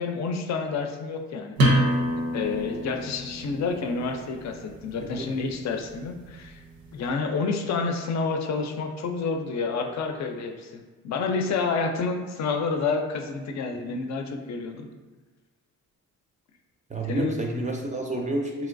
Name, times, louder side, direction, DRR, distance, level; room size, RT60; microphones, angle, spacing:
voice 1, 0.0-1.6 2.3-6.6 6.9-14.9 17.1-17.4, left 4 dB, 55° left, 4 dB, 0.5 m, -29 dB
sound 1, 1.6-7.0, right 1 dB, 80° right, 0.7 m, -28 dB
voice 2, 16.9-18.7, right 1 dB, 20° right, 0 dB, 0.4 m, -29 dB
3.0 x 2.9 x 2.5 m, 1.3 s
cardioid pair, 80°, 34 cm